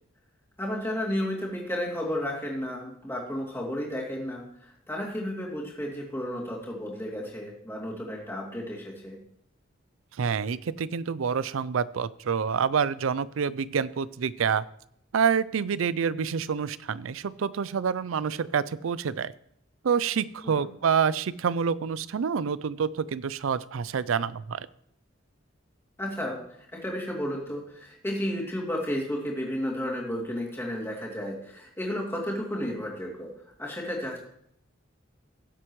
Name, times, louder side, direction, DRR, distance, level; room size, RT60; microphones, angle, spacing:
voice 1, 0.6-9.2 20.4-20.7 26.0-33.3 33.6-34.2, equal, 10° left, -3 dB, 2.7 m, -32 dB
voice 2, 10.2-14.6 15.1-19.3 19.8-24.7, right 6 dB, 85° right, 18 dB, 0.4 m, -27 dB
17.0 x 7.8 x 3.1 m, 0.71 s
head